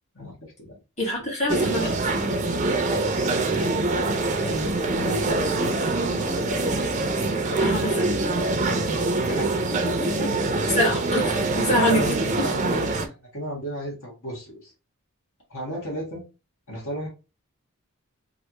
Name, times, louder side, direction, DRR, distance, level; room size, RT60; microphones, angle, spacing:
voice 1, 1.0-1.9 7.6-8.1 10.7-12.1 12.3-12.4, left 1 dB, 30° left, -4 dB, 1.6 m, -24 dB
sound 1, 1.5-13.1, right 2 dB, 35° right, 0.5 m, -24 dB
voice 2, 4.4-5.9 9.2-10.3 11.9-14.7 15.5-16.2 16.7-17.1, equal, 65° left, -4 dB, 1.4 m, -34 dB
3.2 x 2.5 x 2.8 m, 0.30 s
head